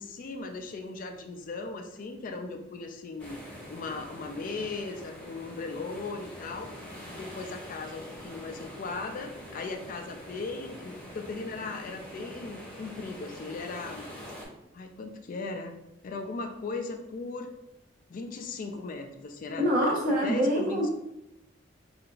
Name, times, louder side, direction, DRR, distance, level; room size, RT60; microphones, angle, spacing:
voice 1, 0.0-3.4 3.7-6.7 7.1-14.1 14.7-15.7 16.0-17.5 18.1-20.9, left 3 dB, 45° left, 5 dB, 0.3 m, -38 dB
sound 1, 3.2-14.5, equal, 10° left, 0.9 m, -45 dB
voice 2, 19.6-20.9, equal, 45° right, -4 dB, 1.1 m, -25 dB
4.7 x 2.5 x 2.4 m, 0.87 s
head